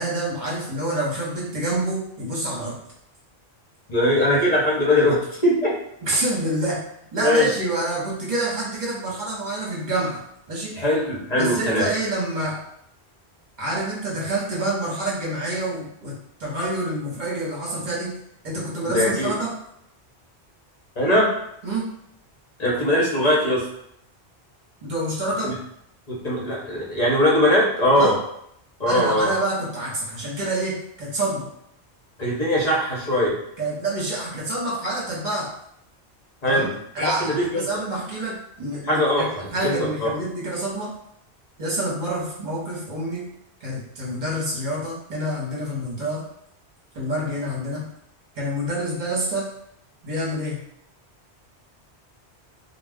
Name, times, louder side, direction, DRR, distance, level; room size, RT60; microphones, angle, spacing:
voice 1, 0.0-2.8 6.0-6.8 7.1-10.2 10.5-10.8 11.3-12.6 13.6-18.2 18.4-19.5 21.6-21.9 24.8-25.5 28.0-28.1 28.9-31.5 33.6-35.5 36.5-36.7 36.9-40.9 41.6-43.3 43.6-46.3 46.9-47.9 48.3-49.5 50.0-50.6, right 1 dB, 45° right, -5 dB, 1.0 m, -27 dB
voice 2, 3.9-5.7 7.2-7.5 10.8-11.9 18.8-19.3 21.0-21.3 22.6-23.6 25.4-25.5 26.1-28.1 28.8-29.3 32.2-33.3 36.4-36.7 37.0-37.6 38.8-40.1, left 1 dB, 45° left, -5 dB, 0.8 m, -21 dB
2.3 x 2.1 x 3.4 m, 0.74 s
omnidirectional pair, 1.1 m